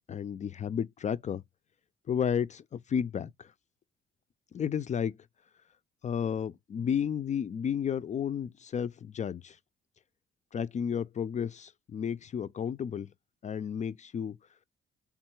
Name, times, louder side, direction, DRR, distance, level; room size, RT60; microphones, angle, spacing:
voice 1, 0.1-1.4 2.1-3.3 4.5-5.1 6.0-9.5 10.5-13.1 13.4-14.4, left 8 dB, 35° left, 0.4 m, -32 dB
3.6 x 2.3 x 4.4 m
cardioid pair, 90°, 20 cm